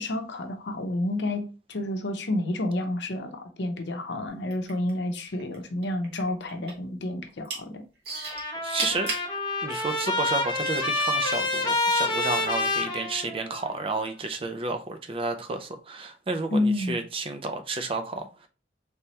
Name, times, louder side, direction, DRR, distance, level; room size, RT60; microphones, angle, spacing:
voice 1, 0.0-7.8 16.5-17.0, left 1 dB, 75° left, 0.7 m, -29 dB
sound 1, 4.4-5.6 5.8-6.9 7.3-7.6 8.0-9.3 10.0-10.1, right 3 dB, 65° right, 1.3 m, -33 dB
Trumpet, 8.1-13.7, left 2 dB, 25° left, 0.7 m, -28 dB
voice 2, 8.6-9.1 9.6-18.5, right 3 dB, 30° right, 0.4 m, -31 dB
3.4 x 3.1 x 2.8 m
head